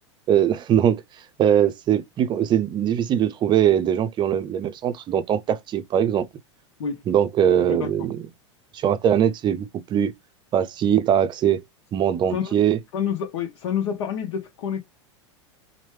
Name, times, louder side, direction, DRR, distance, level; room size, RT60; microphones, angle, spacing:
voice 1, 0.3-1.0 1.4-6.3 7.1-8.3 8.7-10.1 10.5-11.6 11.9-12.8, right 9 dB, 30° right, 0.5 m, -21 dB
voice 2, 12.9-14.8, left 8 dB, 65° left, 0.8 m, -28 dB
3.0 x 2.1 x 3.2 m
hypercardioid pair, 100°, 15 cm